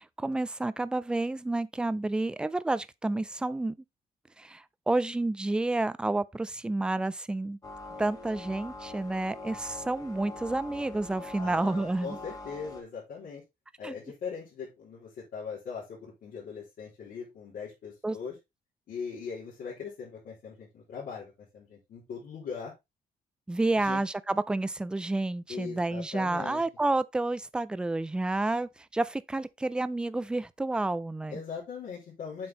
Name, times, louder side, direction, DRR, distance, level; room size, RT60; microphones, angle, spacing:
voice 1, 0.0-3.8 4.4-7.6 8.0-12.2 13.8-14.0 18.0-18.2 23.5-31.4, right 2 dB, 5° right, 0.3 m, -30 dB
sound 1, 7.6-12.8, left 2 dB, 25° left, 1.5 m, -43 dB
voice 2, 11.4-13.4 13.8-18.3 18.9-22.7 23.8-24.0 25.5-26.6 31.3-32.5, left 6 dB, 65° left, 3.4 m, -40 dB
7.5 x 4.5 x 3.9 m
cardioid pair, 175°, 15 cm